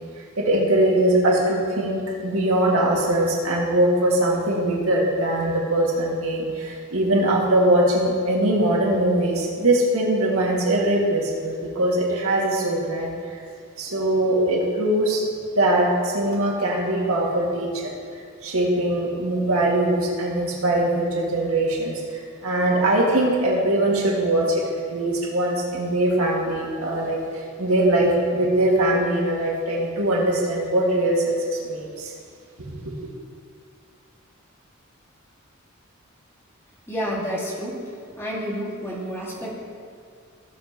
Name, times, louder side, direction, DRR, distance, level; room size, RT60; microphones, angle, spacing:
voice 1, 0.4-13.3 13.8-15.3 15.6-24.6 24.9-32.1, right 1 dB, 90° right, -3 dB, 2.0 m, -22 dB
voice 2, 36.9-37.8 38.2-39.5, equal, 10° left, -5 dB, 2.0 m, -29 dB
16.0 x 7.3 x 3.0 m, 2.1 s
head